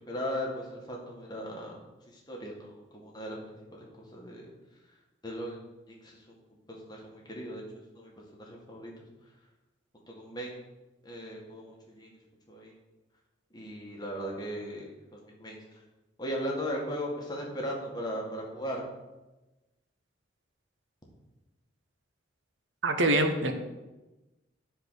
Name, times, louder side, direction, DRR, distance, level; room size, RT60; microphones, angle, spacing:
voice 1, 0.0-1.8 2.1-3.4 3.7-4.5 5.2-5.6 5.9-6.2 6.7-7.6 8.0-9.1 10.1-10.5 11.0-12.1 12.5-12.7 13.5-15.8 16.2-18.8, equal, 20° left, -2 dB, 1.9 m, -38 dB
voice 2, 22.8-23.5, right 1 dB, 85° right, 6 dB, 1.0 m, -24 dB
9.8 x 4.8 x 6.5 m, 1.1 s
head